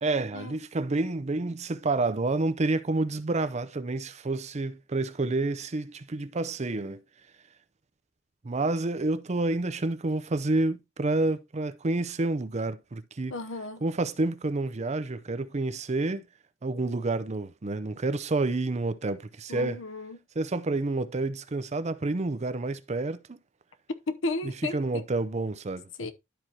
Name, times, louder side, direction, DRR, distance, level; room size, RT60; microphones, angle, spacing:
voice 1, 0.0-7.0 8.4-13.4 13.8-16.2 16.6-19.8 20.4-23.4 24.4-25.9, right 2 dB, 35° right, 0.6 m, -29 dB
voice 2, 13.3-13.8 19.5-20.2 24.1-25.0 26.0-26.1, left 3 dB, 75° left, 0.8 m, -34 dB
12.0 x 4.6 x 2.8 m
head